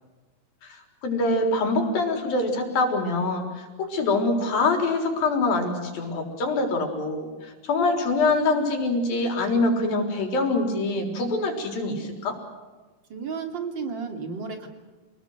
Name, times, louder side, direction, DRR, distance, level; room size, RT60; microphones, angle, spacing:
voice 1, 0.6-12.4, left 2 dB, 90° left, 3 dB, 5.8 m, -25 dB
voice 2, 13.1-14.7, right 5 dB, 35° right, 5 dB, 2.9 m, -32 dB
28.5 x 19.5 x 8.0 m, 1.3 s
omnidirectional pair, 4.0 m